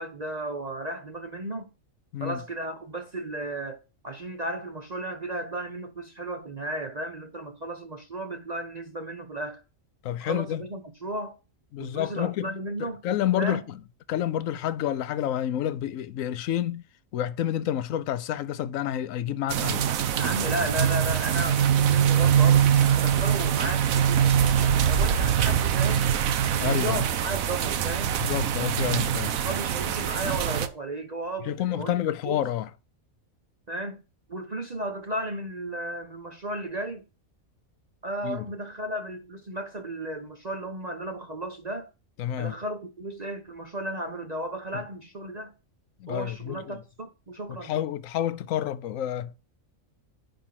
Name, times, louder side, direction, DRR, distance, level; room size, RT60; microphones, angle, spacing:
voice 1, 0.0-1.7 2.2-9.6 10.2-11.4 11.8-13.0 13.4-13.6 20.2-26.1 26.5-28.2 29.4-32.4 33.7-34.0 34.3-37.1 38.0-41.9 42.4-45.5 46.1-47.8, right 1 dB, 35° right, 0.8 m, -34 dB
voice 2, 10.0-10.6 11.7-12.5 12.8-13.6 14.1-16.8 17.1-19.9 26.6-27.0 28.2-29.4 31.4-32.7 38.2-38.4 42.2-42.5 44.7-44.8 46.0-46.8 47.5-49.4, left 11 dB, 75° left, 1.0 m, -29 dB
sound 1, 19.5-30.7, right 9 dB, 85° right, 1.1 m, -23 dB
10.5 x 3.7 x 5.8 m
omnidirectional pair, 1.4 m